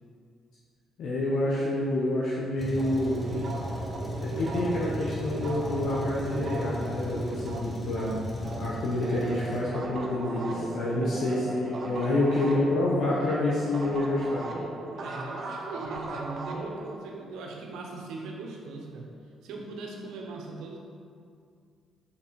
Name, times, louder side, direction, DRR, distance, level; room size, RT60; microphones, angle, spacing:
voice 1, 1.0-3.2 4.2-8.2 8.4-14.4, left 1 dB, 75° left, -6 dB, 0.9 m, -28 dB
Truck, 2.6-9.6, equal, 10° left, 1.2 m, -36 dB
sound 1, 2.8-8.7 9.0-17.0, right 2 dB, 50° right, 0.7 m, -38 dB
voice 2, 10.9-11.2 12.1-12.3 14.9-19.1 19.4-20.8, right 3 dB, 90° right, 0 dB, 0.9 m, -39 dB
6.0 x 4.0 x 4.6 m, 2.3 s
cardioid pair, 90°, 0 cm